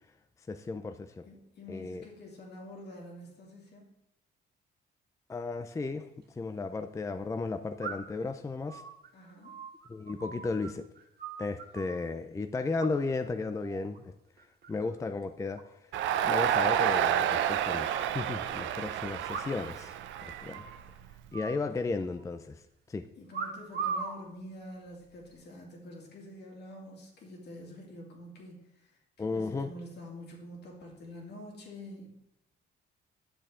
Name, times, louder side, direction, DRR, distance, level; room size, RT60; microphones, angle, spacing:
voice 1, 0.5-1.2 1.7-2.0 5.3-6.1 6.4-8.8 9.9-10.8 11.4-14.0 14.7-15.6 16.2-20.0 20.2-20.6 21.3-22.6 22.9-23.1 29.2-29.7, left 3 dB, 15° left, 9 dB, 0.4 m, -34 dB
voice 2, 1.2-3.9 9.1-9.6 10.2-10.5 21.7-21.8 23.2-32.1, left 1 dB, 65° left, 0 dB, 2.5 m, -47 dB
sound 1, 6.0-6.1 7.8-8.3 8.7-10.7 11.0-12.0 12.8-13.3 13.6-14.0 14.4-14.9 15.2-15.3 15.5-15.6 15.9-16.0 16.3-16.4 17.1-18.1 19.2-19.8 20.1-20.2 20.5-20.8 21.3-22.2 23.3-24.2 24.9-25.3, right 5 dB, 55° right, 1.7 m, -40 dB
Crowd, 15.9-21.1, right 10 dB, 85° right, 0.5 m, -29 dB
10.0 x 6.8 x 3.7 m, 0.82 s
cardioid pair, 110°, 19 cm